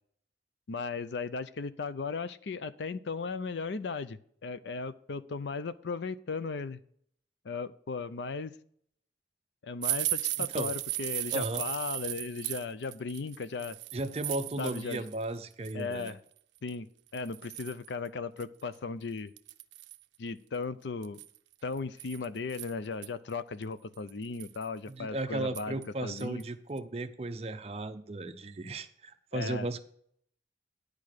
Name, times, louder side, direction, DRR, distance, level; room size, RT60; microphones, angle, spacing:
voice 1, 0.7-6.8 7.4-8.5 9.6-13.8 14.6-15.1 15.7-16.2 16.6-16.9 17.1-19.3 20.2-21.2 21.6-26.4 29.3-29.8, left 4 dB, 80° left, 15 dB, 0.5 m, -36 dB
sound 1, 9.8-15.2 15.5-16.1 16.7-16.8 17.1-17.9 18.4-18.5 18.7-18.8 19.4-20.0 21.0-23.1 23.6-23.7 24.1-24.6 25.5-25.9 26.2-26.4 26.8-26.9, right 17 dB, 80° right, 0.5 m, -36 dB
voice 2, 10.4-10.7 11.3-11.6 13.9-16.1 24.9-29.8, right 2 dB, 35° right, 9 dB, 0.6 m, -35 dB
10.5 x 4.9 x 6.5 m, 0.64 s
head